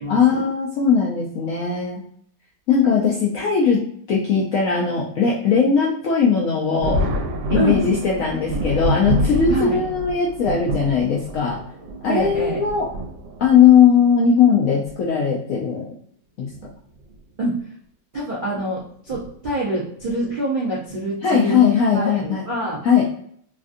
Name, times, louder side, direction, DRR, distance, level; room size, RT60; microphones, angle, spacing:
voice 1, 0.1-2.0 2.7-3.8 4.1-7.0 7.5-11.6 12.0-12.9 13.4-15.9 16.4-16.5 21.2-22.4 22.8-23.0, left 6 dB, 85° left, -3 dB, 0.7 m, -18 dB
Thunder, 6.8-13.8 14.8-14.9 16.4-16.7 17.0-17.1 19.1-19.3 20.0-20.3, equal, 85° right, 1.4 m, -27 dB
voice 2, 7.5-7.9 9.5-9.8 12.1-12.6 17.4-17.6 18.1-22.9, right 2 dB, 55° right, -8 dB, 0.5 m, -26 dB
3.4 x 2.4 x 2.5 m, 0.64 s
omnidirectional pair, 2.0 m